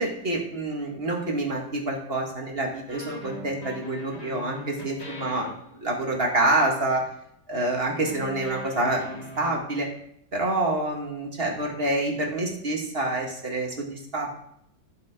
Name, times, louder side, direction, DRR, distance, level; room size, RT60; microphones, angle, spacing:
voice 1, 0.0-5.5 5.8-7.1 7.5-9.9 10.3-14.4, right 2 dB, 30° right, 0 dB, 2.0 m, -27 dB
sound 1, 2.9-6.2 8.0-9.6, left 1 dB, 25° left, 1.5 m, -41 dB
14.0 x 7.4 x 3.8 m, 0.72 s
omnidirectional pair, 2.0 m